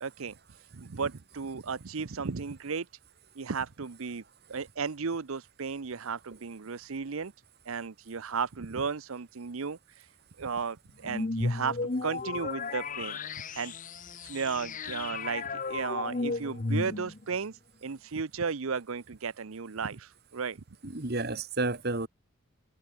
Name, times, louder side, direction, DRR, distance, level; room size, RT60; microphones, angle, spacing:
voice 1, 0.0-2.9 3.4-4.2 4.5-7.3 7.7-10.1 10.4-13.2 13.6-13.7 14.2-20.6, right 5 dB, 70° right, 0.7 m, -35 dB
sound 1, 11.1-17.4, left 3 dB, 35° left, 0.8 m, -34 dB
voice 2, 20.8-22.1, right 2 dB, 45° right, 1.7 m, -31 dB
head